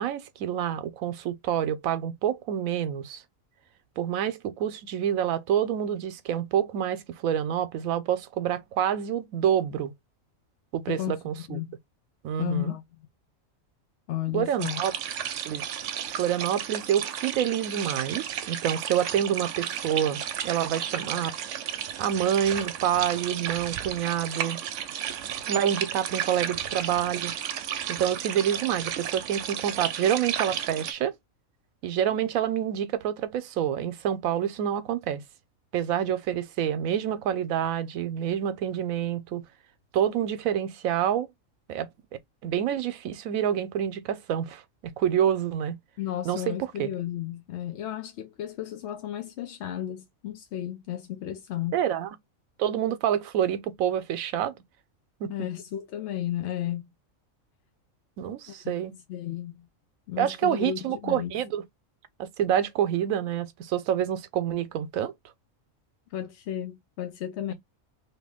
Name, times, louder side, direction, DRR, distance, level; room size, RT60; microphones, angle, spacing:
voice 1, 0.0-3.2 4.0-9.9 10.7-11.6 12.2-12.7 14.3-14.9 15.5-15.6 16.1-21.3 22.0-24.6 25.5-27.3 27.9-31.1 31.8-35.2 35.7-39.4 39.9-41.3 41.7-41.9 42.4-44.6 45.0-45.8 46.2-46.9 51.7-52.1 52.6-54.6 55.2-55.3 58.2-58.9 60.2-61.6 62.2-65.1, right 9 dB, 90° right, 1.0 m, -27 dB
voice 2, 10.9-11.8 12.4-12.8 14.1-14.8 46.0-51.8 55.3-56.9 58.5-58.8 59.1-59.7 60.1-61.4 66.1-67.5, left 12 dB, 65° left, 0.8 m, -33 dB
sound 1, 14.6-30.9, right 9 dB, 70° right, 0.9 m, -33 dB
2.9 x 2.8 x 3.4 m
omnidirectional pair, 1.4 m